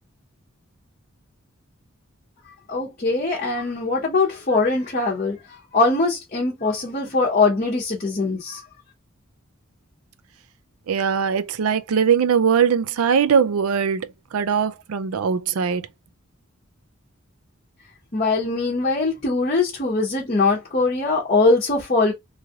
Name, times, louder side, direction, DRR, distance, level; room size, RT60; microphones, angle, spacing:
voice 1, 2.7-8.6 18.1-22.1, left 3 dB, 35° left, 0.9 m, -22 dB
voice 2, 10.9-15.9, right 7 dB, 90° right, 0.4 m, -21 dB
3.1 x 2.4 x 2.8 m
head